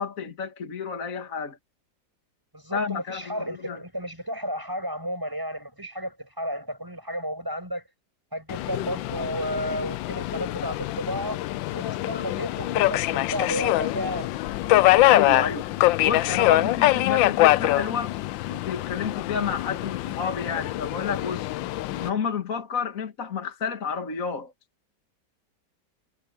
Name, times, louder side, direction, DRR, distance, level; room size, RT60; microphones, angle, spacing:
voice 1, 0.0-1.6 2.7-3.8 15.1-15.7 16.0-18.1 18.5-21.5 22.0-24.5, left 6 dB, 50° left, 2.0 m, -30 dB
voice 2, 2.5-7.8 8.3-11.4 11.7-14.3, equal, 10° right, 6.6 m, -33 dB
Subway metro underground, 8.5-22.1, left 16 dB, 90° left, 1.3 m, -24 dB
omnidirectional pair, 2.0 m